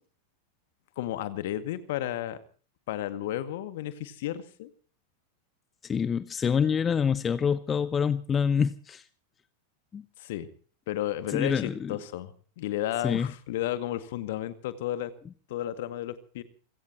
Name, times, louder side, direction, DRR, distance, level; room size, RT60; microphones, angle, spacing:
voice 1, 1.0-2.4 2.9-4.7 10.2-10.5 10.9-15.1 15.5-16.4, left 13 dB, 55° left, 11 dB, 2.0 m, -33 dB
voice 2, 5.8-9.0 9.9-10.0 11.3-11.9 13.0-13.3, left 7 dB, 20° left, 16 dB, 0.8 m, -26 dB
28.5 x 17.0 x 2.9 m, 0.42 s
figure-of-eight pair, 90°, 0 cm